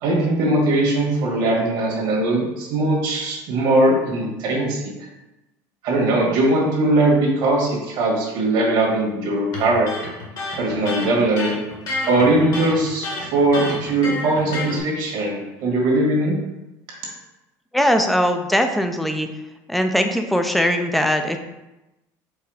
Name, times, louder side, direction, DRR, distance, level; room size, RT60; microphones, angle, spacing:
voice 1, 0.0-4.9 5.8-9.9 10.6-11.6 12.0-16.3, right 2 dB, 70° right, -2 dB, 1.5 m, -20 dB
Electric guitar, 9.5-14.8, left 2 dB, 50° left, 1.4 m, -29 dB
voice 2, 17.7-19.3 19.7-21.4, equal, ahead, 6 dB, 0.4 m, -20 dB
4.7 x 2.2 x 4.8 m, 0.99 s
cardioid pair, 125°, 8 cm